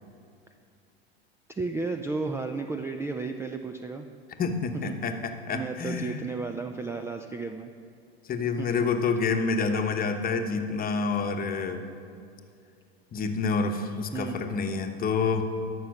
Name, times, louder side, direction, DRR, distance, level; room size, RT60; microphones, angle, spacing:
voice 1, 1.5-4.1 4.9-5.0 5.5-7.7 8.6-8.9 14.1-14.4, right 4 dB, 10° right, 6 dB, 0.4 m, -33 dB
voice 2, 4.4-6.1 8.3-11.9 13.1-15.4, left 4 dB, 30° left, 6 dB, 1.1 m, -28 dB
13.0 x 5.9 x 6.5 m, 2.4 s
hypercardioid pair, 100°, 31 cm